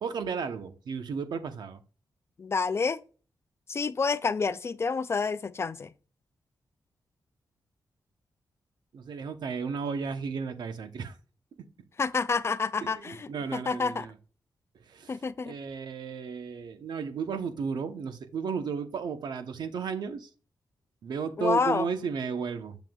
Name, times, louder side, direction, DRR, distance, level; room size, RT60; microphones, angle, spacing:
voice 1, 0.0-1.8 8.9-11.1 12.8-14.1 14.9-15.1 15.4-20.3 21.0-22.8, right 6 dB, 80° right, 0.9 m, -34 dB
voice 2, 2.4-3.0 3.7-5.9 12.0-14.1 15.1-15.6 21.4-21.9, left 4 dB, 35° left, 0.4 m, -28 dB
7.8 x 6.9 x 2.3 m
wide cardioid pair, 110°, 7 cm